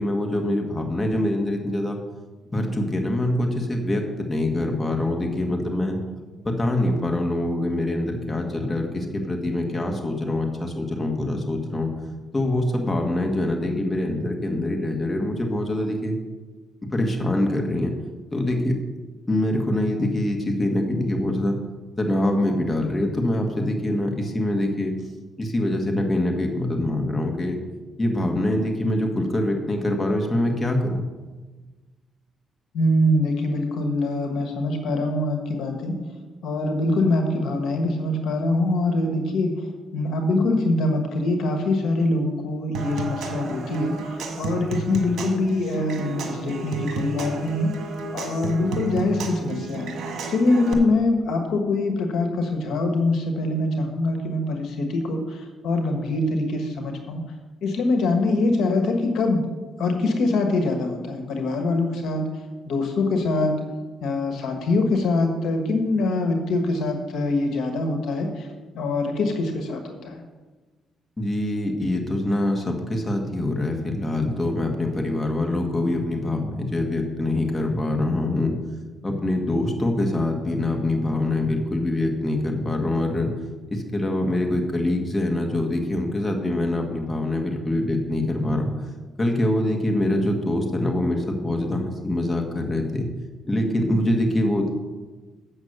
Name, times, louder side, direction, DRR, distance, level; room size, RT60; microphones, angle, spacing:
voice 1, 0.0-2.0 2.5-6.0 6.4-11.9 12.3-16.2 16.9-17.9 18.3-18.7 19.3-21.6 22.0-24.9 25.4-27.6 28.0-31.0 71.2-78.5 79.0-83.3 83.7-88.7 89.2-93.1 93.5-94.7, left 1 dB, 20° left, 2 dB, 1.6 m, -24 dB
voice 2, 32.7-36.0 36.4-39.5 39.9-47.7 48.1-49.9 50.3-57.2 57.6-59.4 59.8-62.2 62.7-63.5 64.0-68.5 68.7-70.2, left 2 dB, 75° left, 5 dB, 1.3 m, -24 dB
Human voice / Acoustic guitar / Percussion, 42.7-50.7, right 3 dB, 65° right, 1.5 m, -32 dB
8.1 x 6.3 x 6.6 m, 1.3 s
cardioid pair, 90°, 0 cm